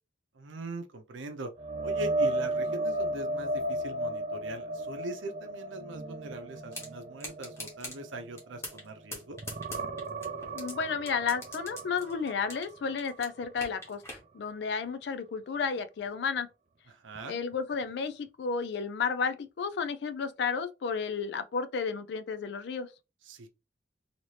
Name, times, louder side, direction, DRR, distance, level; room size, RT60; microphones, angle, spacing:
voice 1, 0.3-1.5 1.8-9.4 16.9-17.4 23.3-23.5, right 1 dB, 85° right, 0.6 m, -41 dB
sound 1, 1.6-9.0 9.3-13.2 13.6-13.8 17.2-17.3, right 1 dB, 35° right, 0.4 m, -34 dB
sound 2, 6.7-6.9 7.2-8.0 8.4-8.9 9.1-10.7 11.1-12.7 13.0-14.2, left 1 dB, 15° left, 1.0 m, -41 dB
voice 2, 10.5-16.5 17.3-22.9, left 5 dB, 65° left, 0.4 m, -32 dB
2.8 x 2.8 x 3.1 m
head